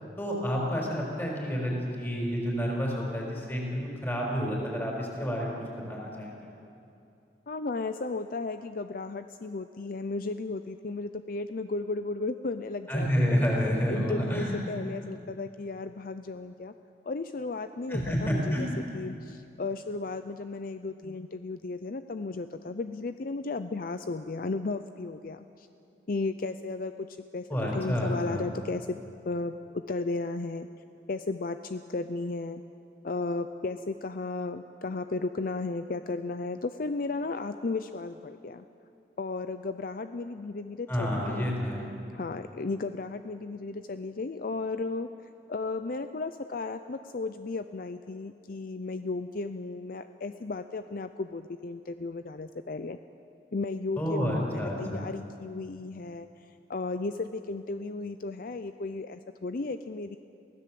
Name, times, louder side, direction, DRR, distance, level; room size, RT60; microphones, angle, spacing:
voice 1, 0.2-6.5 12.9-14.6 17.9-18.7 27.5-28.5 40.9-41.8 54.0-55.0, equal, 15° left, -1 dB, 4.8 m, -29 dB
voice 2, 7.5-16.7 17.0-25.7 26.1-27.1 27.3-28.9 29.2-29.5 29.9-30.7 31.1-32.6 33.0-38.7 39.2-41.5 42.1-45.1 45.5-53.0 53.5-56.3 56.7-60.2, left 3 dB, 55° left, 10 dB, 0.5 m, -34 dB
23.5 x 16.0 x 7.7 m, 2.7 s
head